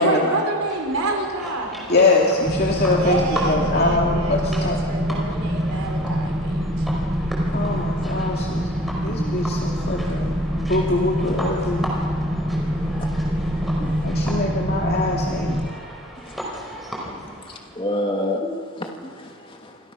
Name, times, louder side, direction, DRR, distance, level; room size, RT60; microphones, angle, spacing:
voice 1, 0.0-1.8 3.0-6.9, right 2 dB, 85° right, 1 dB, 4.3 m, -27 dB
sound 1, 0.6-17.8, equal, ahead, 4.9 m, -36 dB
voice 2, 1.9-4.8 7.5-8.7 9.0-11.9 14.0-15.6, left 2 dB, 45° left, -1 dB, 2.6 m, -23 dB
sound 2, 2.4-15.7, equal, 25° right, 1.7 m, -25 dB
voice 3, 9.1-9.4 13.0-13.1 13.8-14.3 16.2-16.4 17.1-19.8, left 1 dB, 25° left, 2 dB, 2.4 m, -30 dB
29.0 x 27.0 x 6.3 m, 2.1 s
head